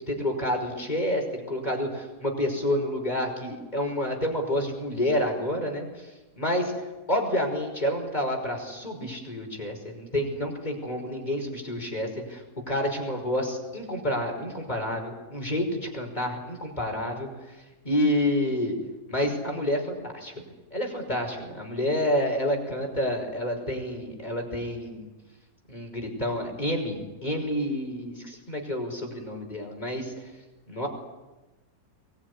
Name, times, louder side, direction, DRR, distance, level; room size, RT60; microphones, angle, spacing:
voice 1, 0.1-6.1 6.4-6.7 7.1-17.3 17.8-18.7 19.1-20.3 20.7-25.1 25.7-30.1 30.7-30.9, left 1 dB, 25° left, 3 dB, 5.8 m, -29 dB
23.5 x 22.0 x 9.8 m, 1.1 s
omnidirectional pair, 1.7 m